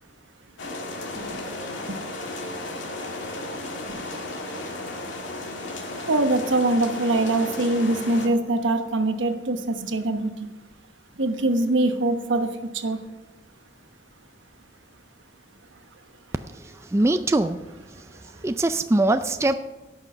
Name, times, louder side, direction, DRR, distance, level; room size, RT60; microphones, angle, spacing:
sound 1, 0.6-8.3, left 2 dB, 80° left, 2.1 m, -34 dB
voice 1, 1.1-1.6 1.9-2.0 3.9-4.0 6.1-10.5 11.2-13.0, right 2 dB, 80° right, 7 dB, 1.1 m, -23 dB
voice 2, 16.5-17.6 18.4-19.5, right 2 dB, 15° right, 9 dB, 0.3 m, -22 dB
16.5 x 6.2 x 5.6 m, 1.1 s
head